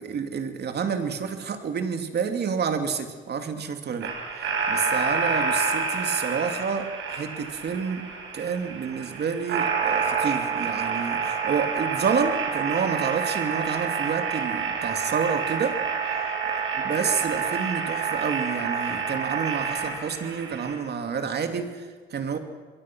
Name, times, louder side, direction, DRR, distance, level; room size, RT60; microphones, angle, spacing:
voice 1, 0.0-15.8 16.5-22.4, right 6 dB, 55° right, 6 dB, 2.6 m, -29 dB
sound 1, 4.0-20.7, right 5 dB, 75° right, 5.6 m, -28 dB
26.0 x 22.5 x 6.2 m, 1.4 s
cardioid pair, 90°, 20 cm